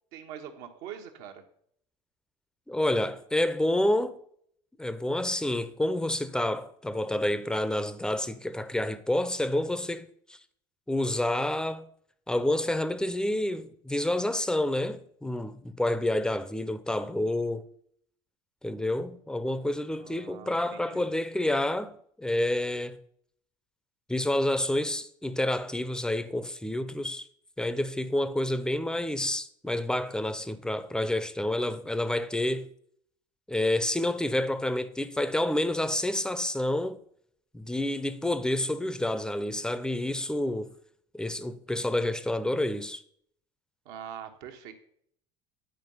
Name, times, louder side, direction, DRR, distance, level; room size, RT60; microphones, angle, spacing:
voice 1, 0.1-1.4 19.9-21.0 43.8-44.7, right 9 dB, 65° right, 1.2 m, -43 dB
voice 2, 2.7-4.2 4.8-10.1 10.9-11.9 12.3-17.7 18.6-23.0 24.1-27.2 27.6-32.7 33.5-37.0 37.5-40.7 41.1-43.0, left 1 dB, 5° left, 0.6 m, -29 dB
9.8 x 4.6 x 5.5 m
hypercardioid pair, 75°, 17 cm